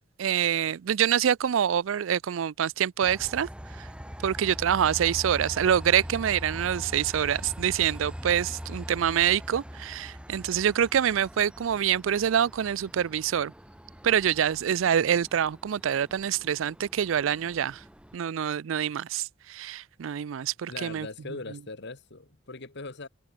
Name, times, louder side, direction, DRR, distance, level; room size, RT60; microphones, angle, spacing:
voice 1, 0.2-3.5 3.7-3.9 4.2-13.5 14.0-17.8 18.1-21.1, right 9 dB, 70° right, 0.4 m, -26 dB
Train, 3.0-18.2, equal, 5° right, 1.8 m, -42 dB
voice 2, 20.7-23.1, left 3 dB, 60° left, 2.0 m, -40 dB
head